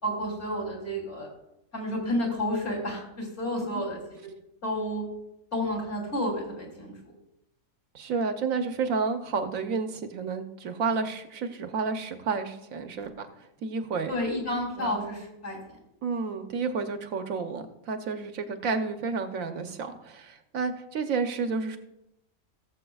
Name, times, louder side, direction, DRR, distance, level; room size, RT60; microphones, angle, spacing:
voice 1, 0.0-1.3 1.7-4.3 4.6-5.0 5.5-6.9 14.1-15.6, left 1 dB, 50° left, -1 dB, 3.3 m, -31 dB
voice 2, 7.9-13.3 13.6-14.1 14.8-15.0 16.0-21.8, right 4 dB, 70° right, 7 dB, 1.2 m, -31 dB
17.5 x 7.5 x 2.3 m, 0.85 s
omnidirectional pair, 1.5 m